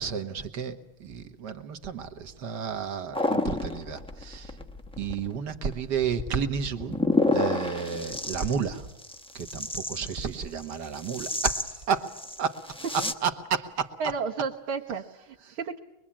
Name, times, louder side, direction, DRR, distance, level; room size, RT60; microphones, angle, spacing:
voice 1, 0.0-4.5 5.0-7.0 7.3-8.9 9.4-12.1 12.4-12.6 12.9-14.1 15.5-15.6, right 6 dB, 55° right, 9 dB, 1.9 m, -31 dB
sound 1, 3.1-13.1, left 2 dB, 5° left, 0.5 m, -30 dB
voice 2, 14.0-15.8, right 5 dB, 75° right, -1 dB, 2.1 m, -32 dB
23.5 x 23.0 x 8.7 m, 0.90 s
omnidirectional pair, 2.4 m